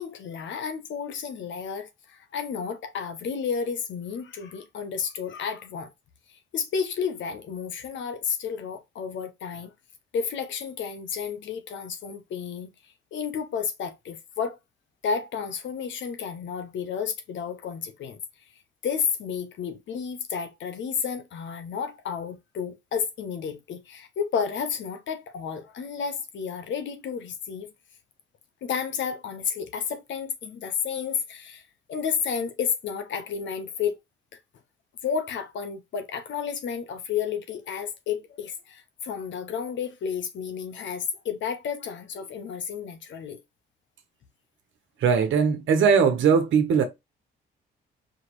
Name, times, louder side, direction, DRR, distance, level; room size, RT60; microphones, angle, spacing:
voice 1, 0.0-5.9 6.3-9.7 10.1-14.6 15.0-18.2 18.8-27.7 28.6-31.6 31.9-34.0 35.0-43.4, left 6 dB, 70° left, 1.0 m, -31 dB
voice 2, 45.0-46.8, right 6 dB, 75° right, 1.2 m, -20 dB
4.8 x 3.1 x 3.0 m
cardioid pair, 90°, 20 cm